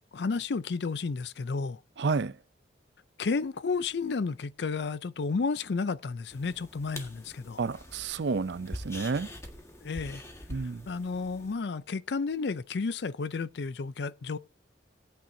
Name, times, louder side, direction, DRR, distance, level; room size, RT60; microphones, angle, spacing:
voice 1, 0.1-1.8 3.2-7.6 9.8-10.2 10.9-14.4, left 4 dB, 65° left, 0.5 m, -32 dB
voice 2, 2.0-2.4 7.6-9.3 10.5-10.9, right 4 dB, 70° right, 0.5 m, -30 dB
sound 1, 6.3-11.5, left 1 dB, 15° left, 1.6 m, -45 dB
18.5 x 8.8 x 2.7 m
head